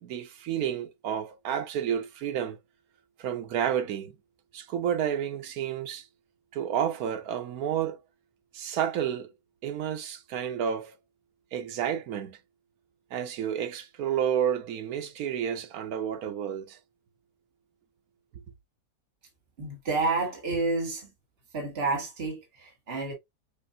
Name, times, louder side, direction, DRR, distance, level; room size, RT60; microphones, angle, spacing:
voice 1, 0.0-2.6 3.2-4.1 4.5-6.1 6.5-8.0 8.5-9.3 9.6-11.0 11.5-12.4 13.1-16.8, right 9 dB, 80° right, 1.2 m, -30 dB
voice 2, 19.6-21.1 21.5-23.1, right 3 dB, 45° right, 1.9 m, -29 dB
6.8 x 2.6 x 2.7 m
omnidirectional pair, 1.5 m